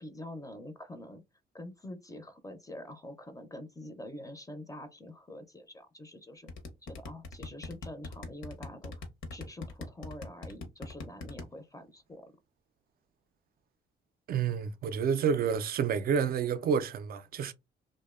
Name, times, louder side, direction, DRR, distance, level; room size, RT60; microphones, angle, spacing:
voice 1, 0.0-1.2 1.5-6.5 6.8-8.9 9.3-12.3, left 1 dB, 15° left, 0.5 m, -45 dB
sound 1, 6.5-11.4, left 3 dB, 75° left, 0.8 m, -40 dB
voice 2, 14.3-17.5, right 7 dB, 50° right, 0.4 m, -29 dB
2.6 x 2.1 x 2.3 m
cardioid pair, 90°, 20 cm